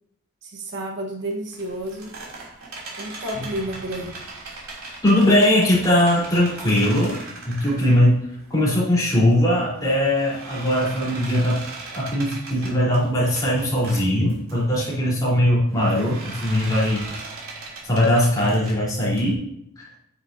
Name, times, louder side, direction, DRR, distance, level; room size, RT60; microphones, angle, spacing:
voice 1, 0.4-2.2 3.0-4.2, right 1 dB, 55° right, 0 dB, 1.4 m, -31 dB
sound 1, 1.5-8.7 9.2-14.5 15.7-19.3, right 3 dB, 80° right, 3.0 m, -39 dB
voice 2, 5.0-7.1 7.5-8.2 8.5-11.6 11.9-17.0 17.8-19.4 19.8-19.9, left 1 dB, 15° left, -6 dB, 3.9 m, -20 dB
9.9 x 9.7 x 2.7 m, 0.77 s
head